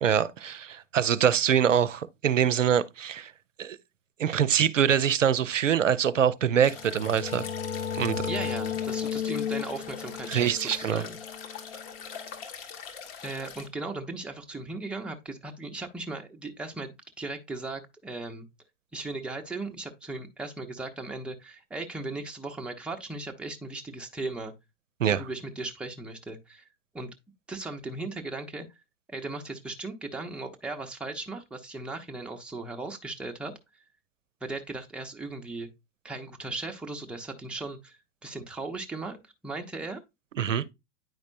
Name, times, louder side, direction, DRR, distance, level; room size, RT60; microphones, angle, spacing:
voice 1, 0.0-3.3 3.6-3.8 4.2-7.4 8.0-8.3 10.3-11.0 25.0-25.2 40.4-40.6, right 8 dB, 80° right, 0.5 m, -24 dB
sound 1, 6.6-13.7, left 6 dB, 50° left, 1.5 m, -43 dB
sound 2, 6.7-12.2, left 8 dB, 80° left, 0.5 m, -34 dB
voice 2, 8.3-11.2 13.2-18.5 18.9-24.5 25.1-26.7 26.9-27.1 27.5-28.7 29.1-33.5 34.4-35.7 36.0-40.0, right 2 dB, 5° right, 0.6 m, -37 dB
9.1 x 5.1 x 2.5 m
figure-of-eight pair, 90°, 37 cm